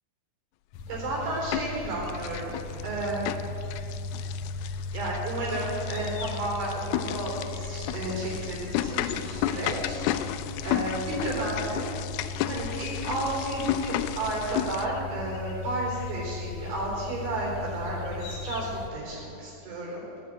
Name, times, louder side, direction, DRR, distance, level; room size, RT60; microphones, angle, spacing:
sound 1, 0.7-18.9, left 3 dB, 70° left, 1.8 m, -37 dB
sound 2, 0.9-1.8 2.1-14.9, left 12 dB, 85° left, 2.5 m, -33 dB
voice 1, 0.9-3.3 4.9-10.0 10.6-11.9 12.4-20.0, right 2 dB, 80° right, -5 dB, 5.9 m, -32 dB
18.0 x 7.0 x 9.1 m, 2.7 s
omnidirectional pair, 4.3 m